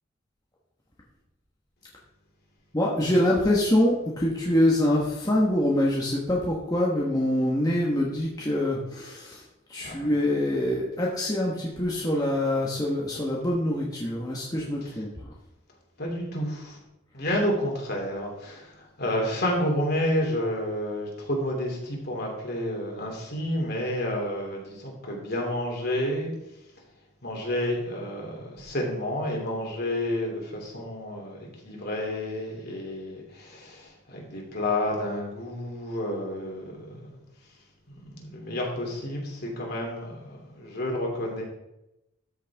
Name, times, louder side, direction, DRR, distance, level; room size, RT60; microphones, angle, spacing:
voice 1, 2.7-9.4 9.7-15.3, left 1 dB, 20° left, -4 dB, 1.3 m, -25 dB
voice 2, 16.0-16.8 17.1-26.3 27.2-37.2 37.9-41.4, left 1 dB, 50° left, -1 dB, 2.9 m, -30 dB
13.5 x 6.6 x 3.6 m, 0.89 s
head